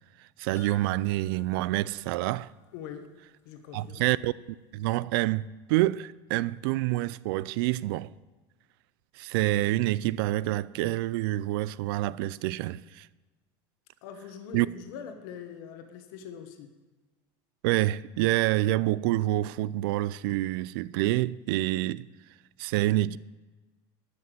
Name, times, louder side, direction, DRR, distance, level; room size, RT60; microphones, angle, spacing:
voice 1, 0.4-2.5 3.7-4.3 4.7-8.1 9.2-13.1 14.5-14.7 17.6-22.1 22.6-23.2, right 16 dB, 75° right, 0.4 m, -27 dB
sound 1, 0.6-3.1 3.4-3.5 3.9-4.0, left 10 dB, 20° left, 0.8 m, -56 dB
voice 2, 2.7-3.1 3.4-4.1 14.0-16.7, left 8 dB, 70° left, 1.3 m, -43 dB
11.5 x 5.9 x 7.7 m
cardioid pair, 160°, 12 cm